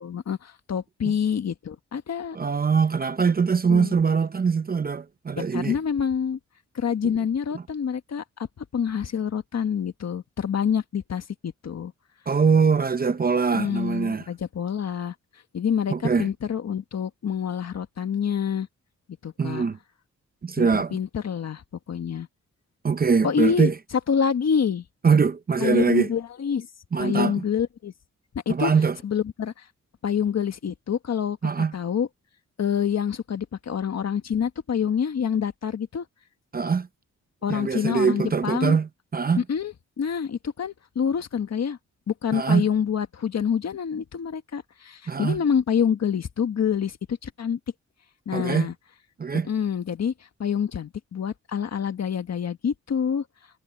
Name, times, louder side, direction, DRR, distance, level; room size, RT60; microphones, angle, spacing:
voice 1, 0.0-2.4 3.7-4.0 5.4-6.4 6.7-8.2 8.6-11.9 13.3-15.1 15.5-18.7 19.2-19.7 20.6-21.6 21.9-22.3 23.2-23.7 24.1-24.8 25.6-26.7 27.0-27.9 28.3-28.7 29.0-29.6 30.0-31.4 31.7-32.1 32.6-36.0 37.4-38.8 39.4-41.8 42.1-47.6 48.2-48.7 49.3-50.1 50.4-53.2, left 7 dB, 60° left, 1.6 m, -27 dB
voice 2, 2.3-5.8 12.3-14.2 15.9-16.3 19.4-19.8 20.4-21.0 22.8-23.7 25.0-26.1 26.9-27.3 28.5-29.0 31.4-31.7 36.5-36.9 37.5-39.4 42.3-42.6 45.1-45.4 48.3-48.7 49.2-49.5, right 5 dB, 30° right, 0.7 m, -22 dB
wide cardioid pair, 125°, 30 cm